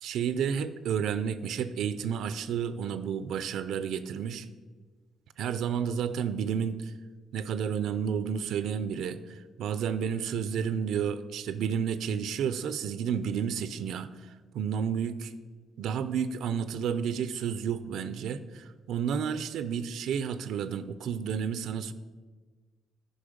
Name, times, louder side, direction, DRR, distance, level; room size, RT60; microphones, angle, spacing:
voice 1, 0.0-4.5 5.4-6.9 7.3-15.3 15.8-21.9, right 7 dB, 80° right, 13 dB, 0.5 m, -31 dB
10.0 x 5.4 x 5.0 m, 1.4 s
cardioid pair, 90°, 0 cm